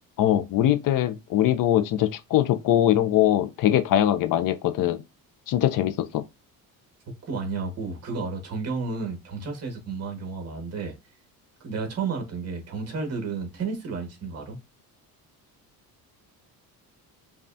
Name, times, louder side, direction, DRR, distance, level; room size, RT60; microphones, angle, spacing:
voice 1, 0.2-5.0 5.5-6.2, left 12 dB, 60° left, 0.5 m, -22 dB
voice 2, 7.2-10.9 11.6-14.6, right 4 dB, 40° right, 1.6 m, -32 dB
5.4 x 2.4 x 2.6 m
cardioid pair, 160°, 37 cm